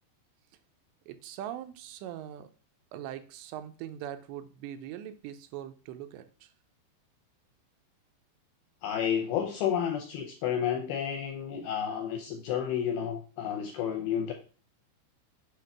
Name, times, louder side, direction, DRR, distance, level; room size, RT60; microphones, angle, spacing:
voice 1, 1.1-2.5 2.9-6.5, right 11 dB, 85° right, 9 dB, 2.8 m, -41 dB
voice 2, 8.8-14.3, left 8 dB, 80° left, 4 dB, 2.2 m, -31 dB
7.6 x 2.8 x 5.8 m, 0.38 s
omnidirectional pair, 5.1 m